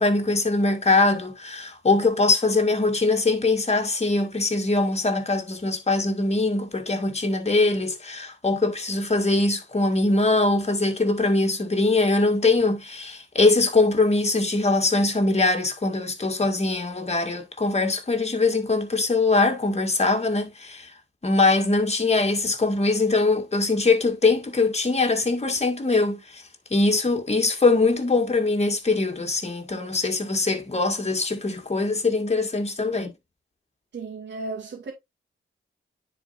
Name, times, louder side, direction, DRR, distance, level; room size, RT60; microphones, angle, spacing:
voice 1, 0.0-20.9 21.2-26.4 26.7-33.1, left 3 dB, 30° left, 2.0 m, -22 dB
voice 2, 33.9-34.9, right 3 dB, 55° right, 2.5 m, -34 dB
9.7 x 4.6 x 2.6 m
supercardioid pair, 50°, 21 cm